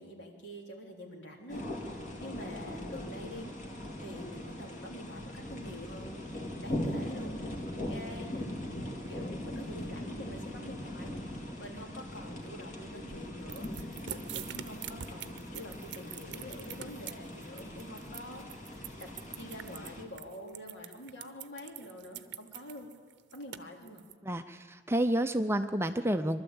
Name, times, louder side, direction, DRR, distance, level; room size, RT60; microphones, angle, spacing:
voice 1, 0.0-3.5 4.0-6.2 6.6-18.7 19.0-22.9 23.3-24.0, equal, 65° left, 1 dB, 3.3 m, -46 dB
sound 1, 1.5-20.0, left 1 dB, 40° left, 2.3 m, -40 dB
sound 2, 13.5-24.1, right 10 dB, 60° right, 0.7 m, -44 dB
voice 2, 24.2-26.4, right 1 dB, 15° right, 8 dB, 0.5 m, -30 dB
23.5 x 12.5 x 8.8 m, 1.5 s
head